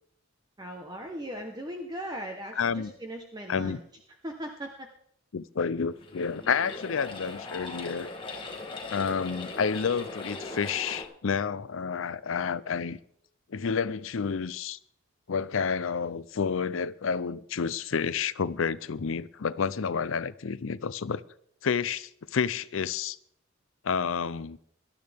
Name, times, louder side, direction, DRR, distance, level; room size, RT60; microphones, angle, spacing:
voice 1, 0.6-3.8 4.2-4.9, equal, 20° right, 1.0 m, -38 dB
voice 2, 2.6-2.9 3.5-3.8 5.3-8.1 8.9-13.0 13.5-14.8 15.3-21.2 21.6-23.2 23.8-24.6, left 6 dB, 75° left, 0.5 m, -30 dB
sound 1, 5.9-11.0, left 3 dB, 25° left, 1.6 m, -39 dB
18.0 x 12.5 x 3.5 m
head